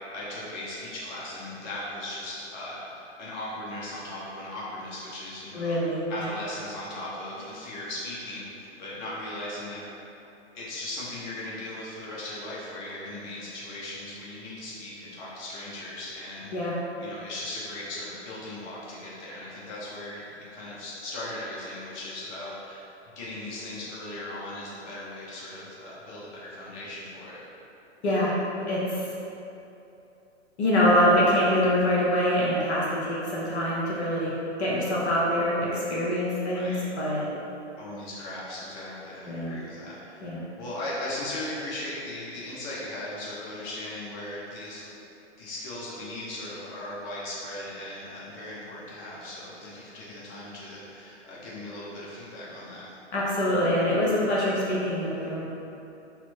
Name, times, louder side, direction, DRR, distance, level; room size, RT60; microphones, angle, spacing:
voice 1, 0.1-5.8 6.1-9.8 10.5-22.8 23.1-27.4 36.5-36.8 37.8-40.2 40.6-44.9 45.4-52.9, left 1 dB, 40° left, -7 dB, 1.0 m, -38 dB
voice 2, 5.5-6.0 16.5-16.8 28.0-28.3 28.7-29.0 30.6-34.3 34.6-37.3 39.3-39.5 40.2-40.4 53.1-55.4, equal, 70° left, -7 dB, 1.1 m, -24 dB
4.2 x 2.0 x 4.4 m, 2.9 s
figure-of-eight pair, 115°, 35 cm